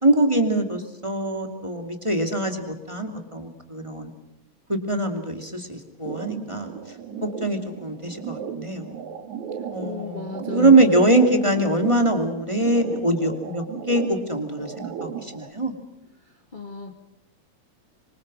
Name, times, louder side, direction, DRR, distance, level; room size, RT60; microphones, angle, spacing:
voice 1, 0.0-4.1 4.7-6.7 7.2-9.0 9.7-15.7, right 2 dB, 10° right, 5 dB, 2.2 m, -23 dB
sound 1, 6.0-15.5, right 7 dB, 80° right, 3.2 m, -36 dB
voice 2, 9.8-10.9 16.5-16.9, left 5 dB, 25° left, 5 dB, 1.2 m, -33 dB
26.5 x 25.0 x 6.3 m, 0.86 s
omnidirectional pair, 3.3 m